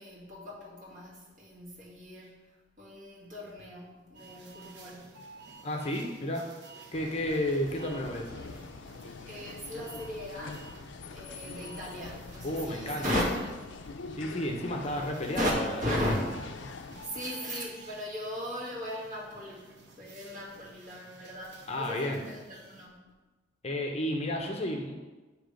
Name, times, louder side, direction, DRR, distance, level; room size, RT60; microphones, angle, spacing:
voice 1, 0.0-5.1 9.3-10.7 11.1-13.6 15.4-16.4 17.0-23.0, equal, 45° right, -6 dB, 1.9 m, -36 dB
sound 1, 4.1-22.9, right 3 dB, 65° right, 0.8 m, -52 dB
voice 2, 5.6-6.5 6.9-8.3 12.4-13.0 14.1-15.8 21.7-22.2 23.6-24.9, left 1 dB, 35° left, 2 dB, 0.6 m, -32 dB
sound 2, 6.9-17.1, left 4 dB, 75° left, 0.4 m, -44 dB
7.7 x 2.9 x 5.0 m, 1.2 s
head